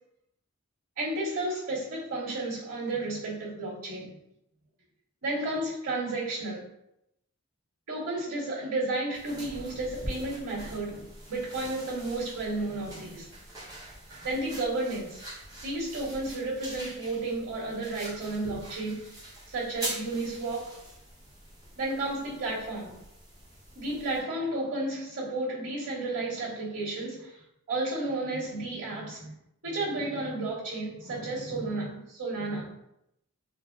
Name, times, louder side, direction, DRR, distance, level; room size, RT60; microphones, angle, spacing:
voice 1, 1.0-4.2 5.2-6.6 7.9-13.3 14.2-15.2 15.6-19.1 19.5-20.8 21.8-22.9 23.7-27.4 27.7-29.3 29.6-32.7, right 2 dB, 85° right, -9 dB, 1.4 m, -32 dB
sound 1, 9.1-24.2, equal, 15° right, 0.8 m, -43 dB
3.7 x 2.1 x 2.3 m, 0.80 s
head